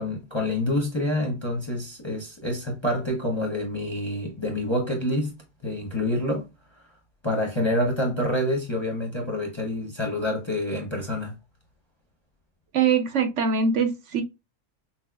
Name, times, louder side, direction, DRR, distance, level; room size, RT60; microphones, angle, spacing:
voice 1, 0.0-6.5 7.2-11.3, left 1 dB, 25° left, 0.7 m, -27 dB
voice 2, 12.7-14.2, right 6 dB, 65° right, 1.0 m, -23 dB
6.0 x 2.0 x 2.2 m
omnidirectional pair, 1.4 m